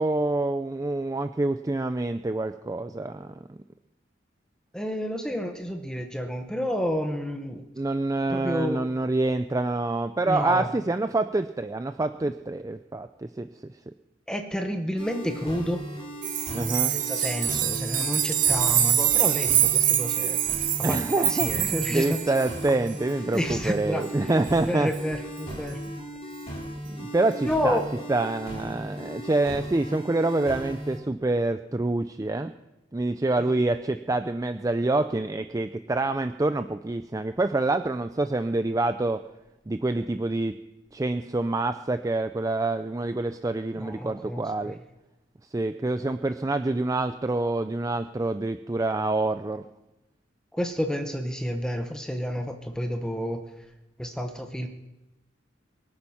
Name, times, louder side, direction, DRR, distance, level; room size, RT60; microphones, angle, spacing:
voice 1, 0.0-3.6 7.8-13.5 16.5-17.0 20.8-24.9 26.9-27.8 28.1-32.5 32.9-39.2 39.7-40.5 40.9-44.8 45.5-49.6, right 2 dB, 20° right, 9 dB, 0.4 m, -26 dB
voice 2, 4.7-7.7 8.3-8.9 10.2-10.7 14.3-15.8 16.9-22.2 23.3-24.4 24.6-25.8 27.4-27.9 33.5-33.7 43.8-44.7 50.5-53.4 54.0-54.7, equal, 5° left, 5 dB, 0.9 m, -30 dB
sound 1, 15.0-31.0, equal, 35° left, 3.5 m, -37 dB
sound 2, 16.2-22.7 24.9-25.0, right 10 dB, 45° right, 0.9 m, -25 dB
23.5 x 8.9 x 5.6 m, 0.98 s
head